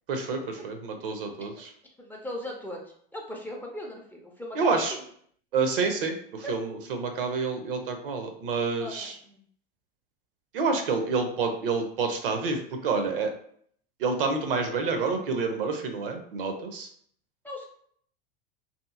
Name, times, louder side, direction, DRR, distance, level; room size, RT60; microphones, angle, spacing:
voice 1, 0.1-1.7 4.6-5.0 5.5-9.1 10.5-13.3 14.0-16.9, right 4 dB, 70° right, 5 dB, 0.6 m, -28 dB
voice 2, 2.0-2.8 3.1-5.0 6.4-6.6 8.8-9.4 17.4-17.7, left 1 dB, 5° left, -1 dB, 0.4 m, -38 dB
2.8 x 2.5 x 2.3 m, 0.63 s
figure-of-eight pair, 80°, 29 cm